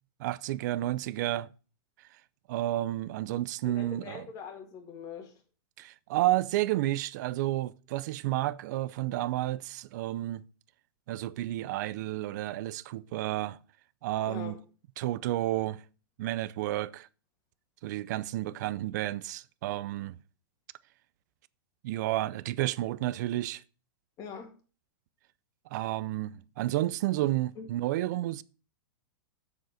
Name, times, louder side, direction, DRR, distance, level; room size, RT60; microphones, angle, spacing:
voice 1, 0.2-1.5 2.5-4.2 5.8-10.4 11.1-13.6 14.0-14.5 15.0-15.8 16.2-17.1 17.8-20.2 21.8-23.6 25.7-28.4, right 15 dB, 50° right, 0.5 m, -31 dB
voice 2, 3.6-5.4 14.3-14.6 24.2-24.5 27.6-27.7, left 6 dB, 30° left, 1.8 m, -42 dB
7.2 x 6.4 x 4.9 m
hypercardioid pair, 150°, 12 cm